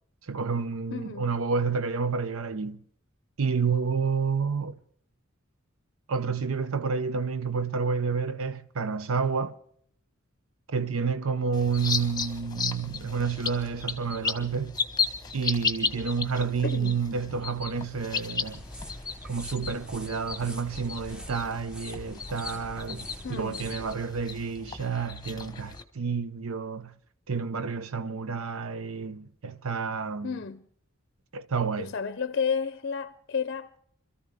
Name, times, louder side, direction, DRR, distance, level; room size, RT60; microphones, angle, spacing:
voice 1, 0.3-2.8 3.4-4.8 6.1-9.6 10.7-14.7 15.3-18.6 19.2-26.9 27.3-30.4 31.3-31.9, right 5 dB, 90° right, 0.7 m, -29 dB
voice 2, 0.9-1.3 16.6-17.0 23.2-23.7 30.2-30.7 31.8-33.8, left 6 dB, 50° left, 0.6 m, -32 dB
sound 1, 11.5-25.8, left 5 dB, 20° left, 1.0 m, -35 dB
sound 2, 18.5-23.9, equal, 5° right, 0.8 m, -45 dB
26.5 x 14.0 x 3.5 m
head